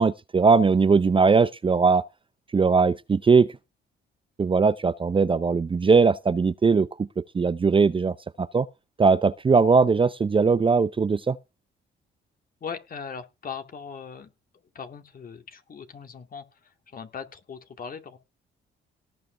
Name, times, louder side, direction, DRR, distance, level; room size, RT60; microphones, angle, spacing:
voice 1, 0.0-2.0 2.5-3.5 4.4-8.7 9.0-11.4, right 4 dB, 25° right, 0.6 m, -20 dB
voice 2, 12.6-14.3 14.7-18.2, left 6 dB, 45° left, 2.3 m, -39 dB
18.0 x 7.9 x 3.4 m
cardioid pair, 90°, 20 cm